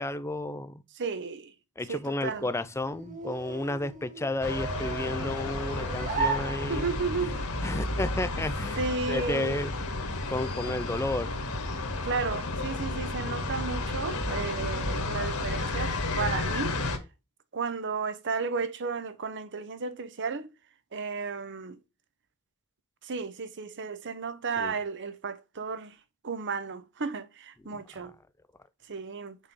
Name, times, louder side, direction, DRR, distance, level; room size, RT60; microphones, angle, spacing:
voice 1, 0.0-0.8 1.8-6.9 7.2-7.3 7.6-9.7 10.3-11.3 24.6-24.8 27.7-28.1, left 2 dB, 10° left, 0.4 m, -32 dB
voice 2, 1.0-1.5 1.9-2.5 6.7-7.4 8.8-9.6 12.0-16.8 17.5-20.5 20.9-21.8 23.0-26.0 26.2-28.1 28.9-29.4, right 4 dB, 55° right, 0.8 m, -33 dB
sound 1, 2.2-7.2, right 4 dB, 35° right, 1.2 m, -36 dB
sound 2, 4.4-17.0, left 2 dB, 70° left, 1.6 m, -32 dB
6.2 x 5.4 x 3.7 m
head